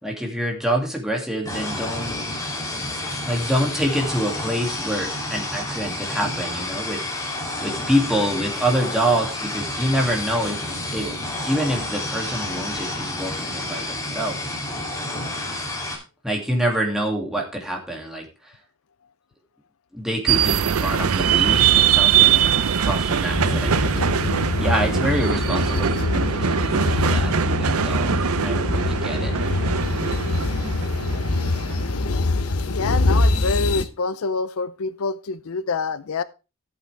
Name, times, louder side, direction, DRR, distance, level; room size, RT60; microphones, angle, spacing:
voice 1, 0.0-2.2 3.3-7.0 7.6-10.6 10.9-11.1 11.4-14.5 16.2-18.6 19.9-24.0 24.6-27.3 27.6-28.1 28.4-29.3, equal, ahead, 0 dB, 2.5 m, -26 dB
sound 1, 1.5-16.0, left 1 dB, 15° left, 2.9 m, -30 dB
sound 2, 20.3-31.8, right 8 dB, 75° right, 0.6 m, -22 dB
sound 3, 23.3-33.8, left 2 dB, 85° left, 0.9 m, -24 dB
voice 2, 32.7-36.2, left 4 dB, 70° left, 16 dB, 0.5 m, -26 dB
13.5 x 8.5 x 3.4 m, 0.30 s
head